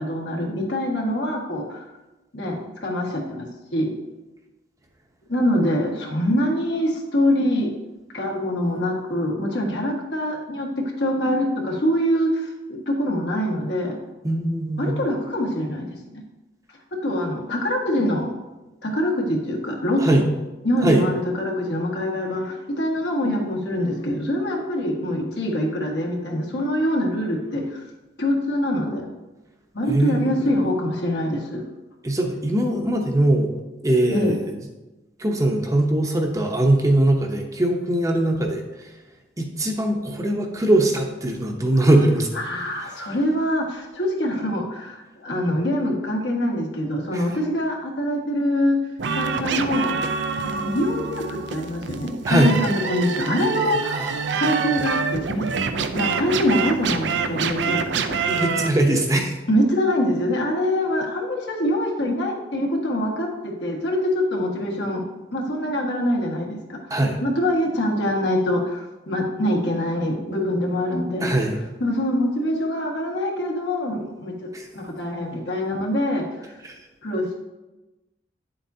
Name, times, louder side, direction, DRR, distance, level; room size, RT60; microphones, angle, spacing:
voice 1, 0.0-1.8 2.3-3.9 5.3-7.7 8.1-13.9 14.8-16.2 16.9-18.3 18.8-20.2 20.6-27.8 28.2-29.1 29.7-31.6 34.1-34.4 42.4-48.8 49.1-50.0 50.4-54.1 54.4-55.4 55.7-58.2 59.5-65.0 65.3-66.8 67.2-71.3 71.8-76.5 77.0-77.3, left 1 dB, 70° left, -1 dB, 1.6 m, -24 dB
voice 2, 14.2-14.9 20.0-20.2 20.8-21.0 29.9-30.3 32.0-33.5 33.8-34.6 35.2-38.9 39.4-42.4 47.1-47.3 52.2-52.5 53.9-54.4 58.3-59.4 66.9-67.2 71.2-71.6 74.5-74.7 76.6-76.8, right 1 dB, 20° right, 2 dB, 0.8 m, -21 dB
sound 1, 49.0-58.7, right 5 dB, 75° right, 0.5 m, -26 dB
9.6 x 7.5 x 2.7 m, 1.1 s
head